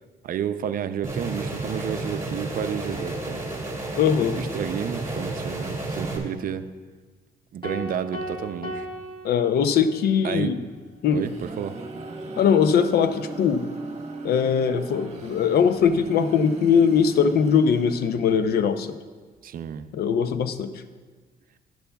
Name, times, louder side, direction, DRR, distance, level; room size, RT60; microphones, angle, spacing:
voice 1, 0.2-3.5 4.3-6.7 7.5-8.9 10.2-10.6 11.1-11.8 19.4-19.9, right 8 dB, 60° right, 11 dB, 0.5 m, -31 dB
sound 1, 1.0-6.2, right 2 dB, 20° right, 2.5 m, -31 dB
voice 2, 4.0-4.4 9.2-10.6 11.0-11.2 12.4-13.6 14.2-18.9 19.9-20.7, left 7 dB, 75° left, 11 dB, 0.6 m, -21 dB
sound 2, 7.6-10.1, equal, 30° left, 1.4 m, -36 dB
sound 3, 10.9-18.6, right 3 dB, 40° right, 1.3 m, -38 dB
14.0 x 10.5 x 2.3 m, 1.4 s
cardioid pair, 100°, 17 cm